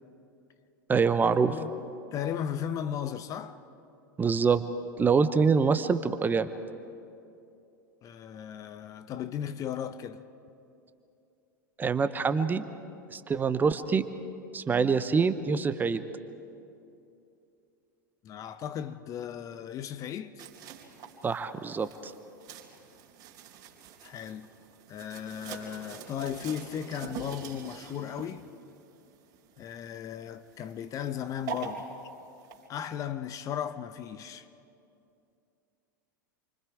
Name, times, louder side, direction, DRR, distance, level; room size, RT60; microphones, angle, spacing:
voice 1, 0.9-1.5 4.2-4.6 5.0-6.5 11.8-12.6 13.1-14.1 14.5-16.0 21.2-22.1, right 5 dB, 15° right, 0.9 m, -25 dB
voice 2, 2.1-3.6 8.0-10.2 18.2-20.3 24.0-24.5 24.9-28.4 29.6-31.9 32.7-34.5, left 9 dB, 35° left, 0.9 m, -36 dB
sound 1, 20.4-32.7, right 6 dB, 40° right, 3.6 m, -45 dB
28.5 x 24.5 x 4.8 m
figure-of-eight pair, 85°, 10 cm